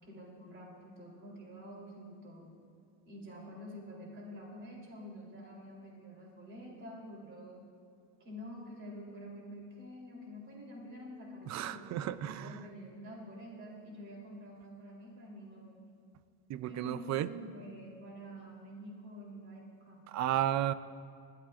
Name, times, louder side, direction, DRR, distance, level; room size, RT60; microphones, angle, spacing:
voice 1, 0.0-2.5 3.0-7.7 8.2-15.9 16.6-20.0, equal, 35° right, -3 dB, 3.3 m, -48 dB
voice 2, 11.5-12.4 16.5-17.3 20.1-20.7, right 12 dB, 50° right, 15 dB, 0.5 m, -32 dB
20.0 x 13.0 x 2.5 m, 2.4 s
cardioid pair, 115°, 37 cm